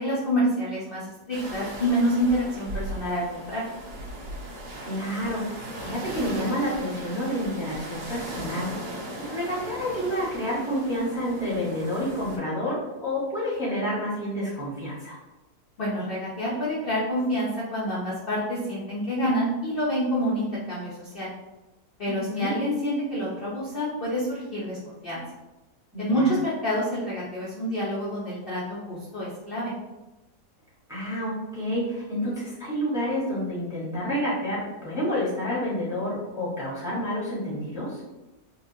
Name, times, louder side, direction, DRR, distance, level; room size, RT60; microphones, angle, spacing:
voice 1, 0.0-3.7 15.8-21.3 22.0-25.2 26.0-29.7, equal, 50° left, -7 dB, 0.7 m, -27 dB
sound 1, 1.3-12.4, right 1 dB, 85° right, 1.4 m, -38 dB
voice 2, 4.8-8.7 9.2-15.2 22.1-22.5 26.1-26.3 30.9-38.0, equal, 5° right, -7 dB, 0.9 m, -29 dB
3.9 x 2.3 x 2.7 m, 1.0 s
omnidirectional pair, 1.7 m